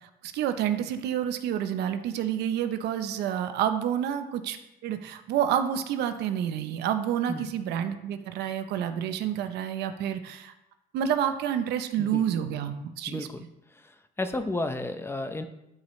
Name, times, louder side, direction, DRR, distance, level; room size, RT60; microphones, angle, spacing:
voice 1, 0.0-4.6 4.8-10.5 10.9-13.3, right 9 dB, 80° right, 9 dB, 0.8 m, -29 dB
voice 2, 13.1-15.4, left 2 dB, 15° left, 8 dB, 0.7 m, -33 dB
12.5 x 4.9 x 3.2 m, 0.89 s
cardioid pair, 110°, 17 cm